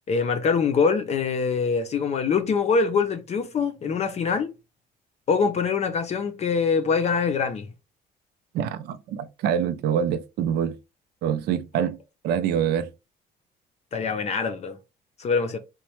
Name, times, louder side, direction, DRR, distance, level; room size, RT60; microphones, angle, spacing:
voice 1, 0.1-4.5 5.3-7.7 13.9-14.8 15.2-15.6, left 5 dB, 40° left, 0.5 m, -24 dB
voice 2, 8.5-10.7 11.2-12.0 12.2-12.9, right 8 dB, 75° right, 0.5 m, -25 dB
3.1 x 2.1 x 3.0 m
cardioid pair, 110°, 17 cm